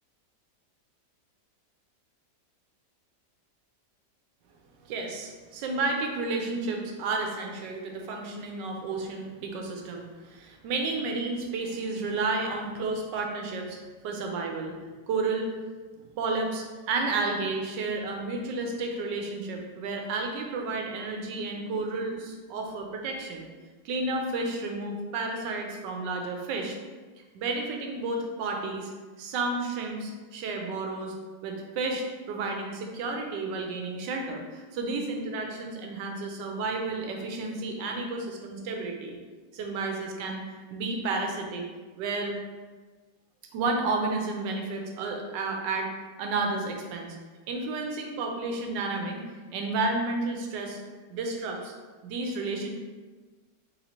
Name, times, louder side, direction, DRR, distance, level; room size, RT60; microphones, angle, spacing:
voice 1, 4.8-13.8 14.0-14.8 15.1-15.5 16.0-23.5 23.8-26.8 27.3-28.9 29.2-31.1 31.4-39.2 39.5-40.4 40.7-41.6 42.0-42.3 43.5-45.9 46.2-47.2 47.5-49.2 49.5-50.8 51.1-51.7 52.0-52.7, right 3 dB, 85° right, 2 dB, 1.2 m, -31 dB
3.6 x 2.9 x 2.8 m, 1.3 s
omnidirectional pair, 1.9 m